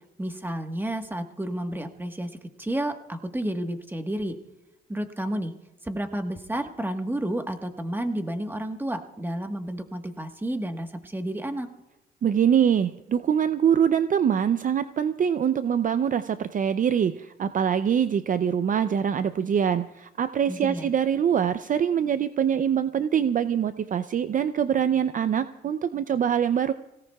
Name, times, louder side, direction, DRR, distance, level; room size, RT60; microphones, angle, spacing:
voice 1, 0.2-4.4 4.9-5.5 5.8-11.7 20.5-20.9, right 1 dB, 10° right, 6 dB, 1.3 m, -31 dB
voice 2, 12.2-26.7, right 8 dB, 40° right, 12 dB, 0.5 m, -24 dB
25.5 x 17.5 x 2.3 m, 0.95 s
cardioid pair, 90°, 20 cm